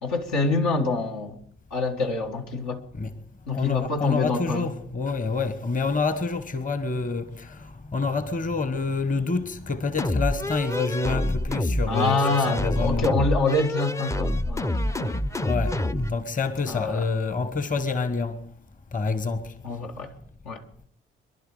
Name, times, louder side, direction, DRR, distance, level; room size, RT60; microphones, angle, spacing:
voice 1, 0.0-1.4 1.7-2.8 3.5-4.7 11.9-15.2 16.7-17.1 19.6-20.1 20.4-20.6, left 3 dB, 70° left, 1.8 m, -26 dB
voice 2, 3.5-13.1 15.4-15.8 16.1-18.4 18.9-19.5, left 4 dB, 25° left, 1.3 m, -27 dB
sound 1, 10.0-16.2, left 1 dB, 10° left, 0.6 m, -27 dB
25.5 x 11.5 x 4.9 m
figure-of-eight pair, 40°, 29 cm